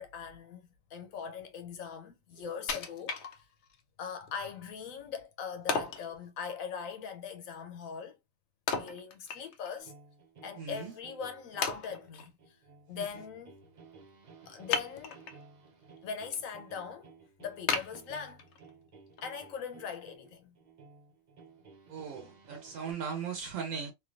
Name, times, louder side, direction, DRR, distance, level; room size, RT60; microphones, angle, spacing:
voice 1, 0.0-3.2 4.0-8.2 8.7-9.9 10.4-12.6 12.9-13.6 14.5-15.2 16.0-17.1 17.4-18.4 19.2-20.5, left 6 dB, 85° left, 1.1 m, -41 dB
Wood, 2.7-3.8 4.3-4.4 5.7-6.1 8.7-9.8 10.1-10.2 10.9-11.0 11.6-12.3 14.7-15.4 15.9-16.4 16.8-16.9 17.7-18.7 19.2-19.3, left 5 dB, 65° left, 0.8 m, -34 dB
sound 1, 9.8-22.9, right 4 dB, 45° right, 0.6 m, -56 dB
voice 2, 10.6-10.9 12.9-13.0 21.9-23.9, right 6 dB, 80° right, 1.1 m, -38 dB
3.2 x 2.6 x 2.4 m
omnidirectional pair, 1.4 m